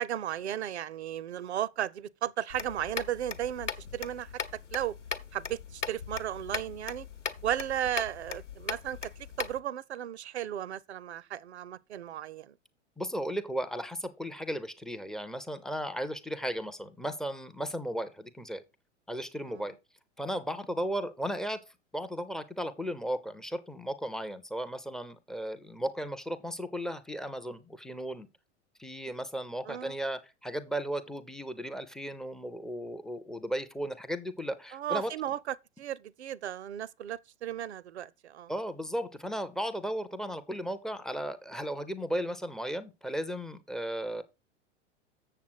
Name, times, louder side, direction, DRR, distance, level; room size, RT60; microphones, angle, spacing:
voice 1, 0.0-4.3 4.7-5.0 5.3-7.1 7.4-9.1 9.4-12.5 19.4-19.6 29.7-30.0 34.7-38.5, right 11 dB, 65° right, 0.6 m, -35 dB
sound 1, 2.5-9.6, left 6 dB, 80° left, 1.0 m, -39 dB
voice 2, 13.0-18.6 19.1-19.8 20.2-21.6 21.9-28.3 28.8-35.1 38.5-44.2, equal, ahead, 0.4 m, -35 dB
7.5 x 7.0 x 4.5 m
figure-of-eight pair, 95°, 35 cm